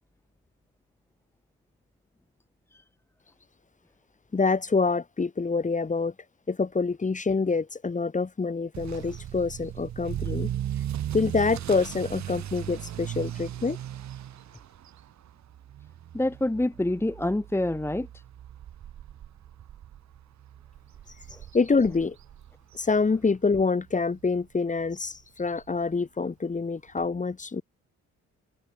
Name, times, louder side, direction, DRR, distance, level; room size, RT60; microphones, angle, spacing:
voice 1, 4.3-6.1 6.5-10.5 11.1-13.8 21.5-22.2 22.7-27.6, left 4 dB, 25° left, 2.0 m, -26 dB
Motor vehicle (road) / Accelerating revving vroom, 8.7-23.6 23.9-24.3 24.8-24.9 25.2-25.3 25.6-25.7 27.0-27.1, right 11 dB, 70° right, 7.3 m, -37 dB
voice 2, 16.1-18.1, left 1 dB, 10° left, 1.2 m, -26 dB
open air
cardioid pair, 80°, 29 cm